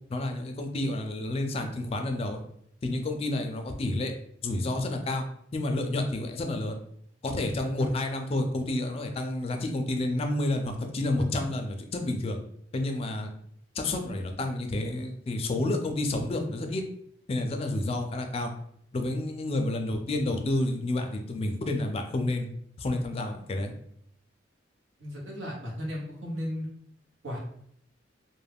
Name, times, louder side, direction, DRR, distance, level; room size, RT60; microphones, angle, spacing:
voice 1, 0.1-2.4 2.8-4.1 4.4-5.3 5.5-6.8 7.2-12.4 12.7-13.3 13.7-16.8 17.3-18.5 18.9-22.5 22.8-23.7, left 2 dB, 30° left, 4 dB, 0.3 m, -30 dB
voice 2, 25.0-26.7 27.2-27.4, equal, 90° right, -3 dB, 0.9 m, -35 dB
2.3 x 2.0 x 3.3 m, 0.68 s
head